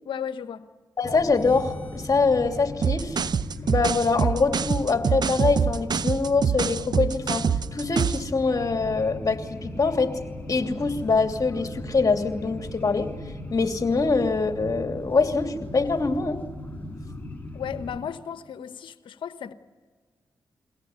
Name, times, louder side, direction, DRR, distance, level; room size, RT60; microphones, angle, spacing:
voice 1, 0.0-0.6 17.5-19.5, left 8 dB, 75° left, 1.1 m, -34 dB
voice 2, 1.0-3.2 3.6-7.4 7.7-10.2 10.5-13.1 13.5-16.4, left 4 dB, 45° left, 2.8 m, -24 dB
sound 1, 1.0-18.0, left 1 dB, 20° left, 5.6 m, -38 dB
sound 2, 2.8-8.3, right 7 dB, 55° right, 0.7 m, -25 dB
22.5 x 17.0 x 9.8 m
supercardioid pair, 45°, 8 cm